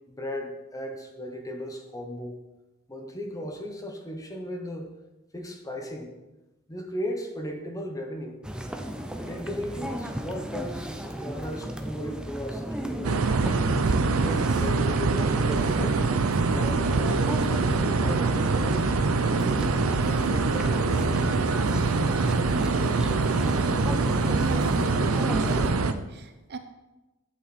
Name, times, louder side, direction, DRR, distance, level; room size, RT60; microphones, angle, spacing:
voice 1, 0.1-2.4 2.9-4.9 5.3-6.1 6.7-8.4 9.2-13.5 14.2-16.1 16.5-18.9 19.1-21.4, equal, 15° left, 3 dB, 1.2 m, -36 dB
sound 1, 8.4-25.7, equal, 5° right, 0.7 m, -34 dB
sound 2, 13.0-25.9, right 3 dB, 85° right, 0.7 m, -24 dB
voice 2, 24.4-24.8 25.3-26.6, right 3 dB, 50° right, 8 dB, 0.8 m, -38 dB
11.0 x 8.7 x 4.3 m, 1.0 s
head